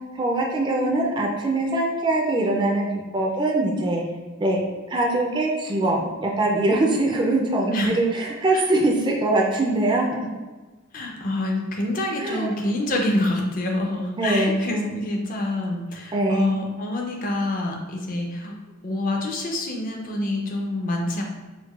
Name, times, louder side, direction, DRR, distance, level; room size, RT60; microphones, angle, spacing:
voice 1, 0.1-4.0 4.4-4.6 4.9-10.1 12.2-12.5 14.2-15.0 16.1-16.6, right 2 dB, 20° right, -2 dB, 0.3 m, -22 dB
voice 2, 10.9-18.5 18.8-21.2, left 1 dB, 40° left, 1 dB, 0.5 m, -27 dB
4.5 x 2.2 x 2.3 m, 1.3 s
head